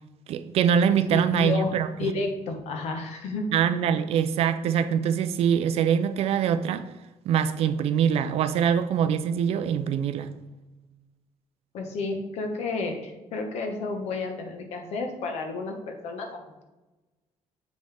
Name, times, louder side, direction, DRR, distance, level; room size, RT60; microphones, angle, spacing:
voice 1, 0.3-2.1 3.5-6.9 7.3-10.3, right 8 dB, 55° right, 11 dB, 0.4 m, -24 dB
voice 2, 1.1-1.7 2.0-3.5 11.7-16.4, left 3 dB, 65° left, 4 dB, 1.1 m, -31 dB
7.4 x 5.3 x 3.4 m, 1.1 s
cardioid pair, 170°, 12 cm